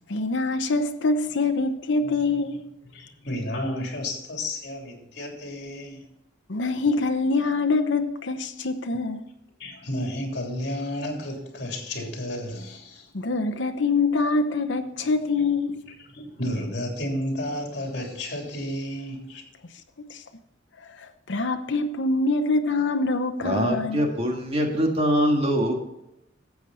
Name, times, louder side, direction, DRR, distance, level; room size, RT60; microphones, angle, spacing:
voice 1, 0.1-2.6 6.5-9.2 13.1-15.8 20.1-20.2 20.8-24.1, left 3 dB, 75° left, 0.9 m, -25 dB
voice 2, 2.9-6.0 9.6-13.1 15.4-15.5 16.1-19.4, left 1 dB, 60° left, 3.3 m, -32 dB
voice 3, 23.4-25.7, equal, 30° right, 1.8 m, -23 dB
13.0 x 8.1 x 4.2 m
head